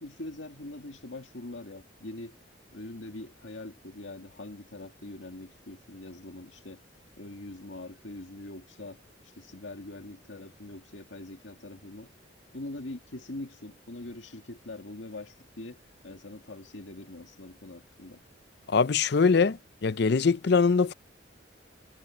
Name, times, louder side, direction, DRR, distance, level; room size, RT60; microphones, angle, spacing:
voice 1, 0.0-2.4 2.7-6.8 7.2-12.1 12.5-15.8 16.0-18.2, left 2 dB, 75° left, 2.0 m, -43 dB
voice 2, 18.7-20.9, left 5 dB, 60° left, 0.5 m, -23 dB
head